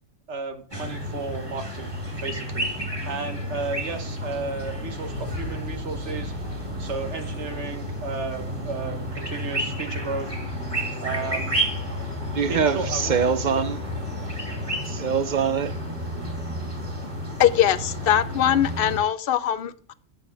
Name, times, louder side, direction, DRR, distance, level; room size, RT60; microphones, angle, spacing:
voice 1, 0.3-6.5 6.8-10.3 10.6-10.7 11.0-11.5 12.5-13.2, right 4 dB, 70° right, 1.3 m, -33 dB
sound 1, 0.7-19.0, equal, 20° right, 2.6 m, -31 dB
voice 2, 12.3-13.8 14.9-15.7, right 7 dB, 55° right, 0.5 m, -24 dB
voice 3, 17.4-19.9, left 10 dB, 60° left, 0.6 m, -21 dB
9.0 x 8.3 x 3.3 m
omnidirectional pair, 1.3 m